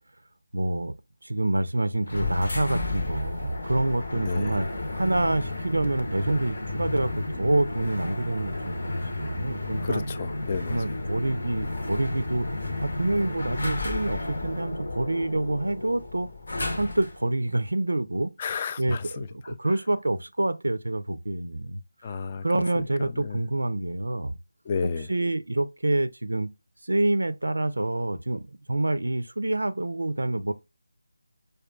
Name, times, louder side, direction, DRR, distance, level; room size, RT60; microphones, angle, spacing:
voice 1, 0.5-0.9 1.2-10.0 10.7-16.3 16.7-18.3 18.8-24.4 24.8-26.5 26.8-28.4 28.7-30.5, right 2 dB, 70° right, 0.4 m, -27 dB
sound 1, 2.1-17.2, left 2 dB, 55° left, 0.8 m, -32 dB
voice 2, 4.1-4.6 9.8-10.8 18.4-19.3 22.0-22.4 23.2-23.4 24.7-25.1, left 5 dB, 25° left, 0.3 m, -31 dB
4.9 x 2.3 x 2.2 m
figure-of-eight pair, 160°, 0 cm